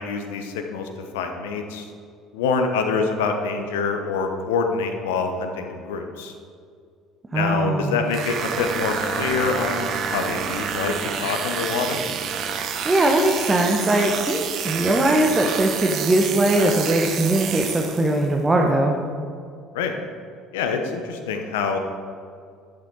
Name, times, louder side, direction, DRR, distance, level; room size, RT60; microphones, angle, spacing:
voice 1, 0.0-1.9 2.3-6.3 7.3-12.0 19.7-19.9 20.5-21.8, left 5 dB, 75° left, 5 dB, 0.9 m, -26 dB
voice 2, 7.3-8.0 12.8-18.9, right 1 dB, 20° right, 1 dB, 1.2 m, -20 dB
sound 1, 8.1-18.3, right 7 dB, 55° right, 0.9 m, -28 dB
11.0 x 7.5 x 4.7 m, 2.2 s
hypercardioid pair, 60°, 0 cm